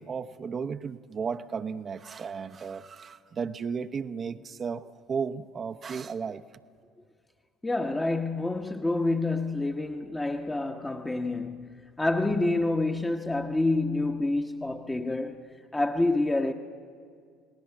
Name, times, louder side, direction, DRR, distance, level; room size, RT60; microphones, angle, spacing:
voice 1, 0.0-6.4, right 6 dB, 40° right, 0.8 m, -34 dB
voice 2, 7.6-15.5 15.7-16.5, left 2 dB, 15° left, 1.1 m, -28 dB
29.5 x 19.0 x 7.2 m
hypercardioid pair, 60°, 0 cm